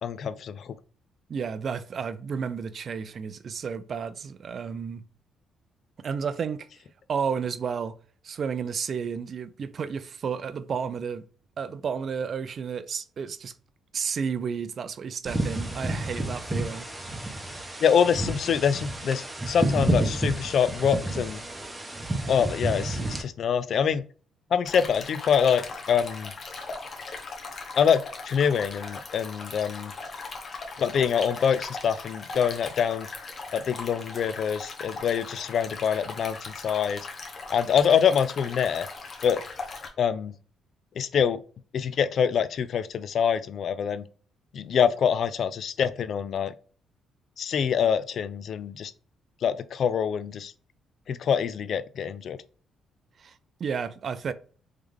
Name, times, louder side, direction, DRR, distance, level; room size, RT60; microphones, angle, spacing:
voice 1, 0.0-0.7 17.8-21.4 22.3-24.0 24.5-26.3 27.7-29.9 30.8-33.1 33.5-37.1 37.5-38.9 39.2-39.4 40.0-40.3 41.0-41.4 41.7-44.0 44.5-46.5 47.4-48.9 49.4-50.5 51.1-52.4, left 7 dB, 60° left, 0.4 m, -25 dB
voice 2, 1.3-5.0 6.0-6.7 7.1-8.0 8.2-11.3 11.6-13.5 13.9-16.9 53.2-54.3, right 6 dB, 50° right, 0.4 m, -32 dB
sound 1, 15.3-23.2, right 1 dB, 15° right, 0.9 m, -30 dB
Stream, 24.6-39.9, left 3 dB, 45° left, 0.9 m, -39 dB
3.5 x 3.2 x 3.3 m
cardioid pair, 90°, 0 cm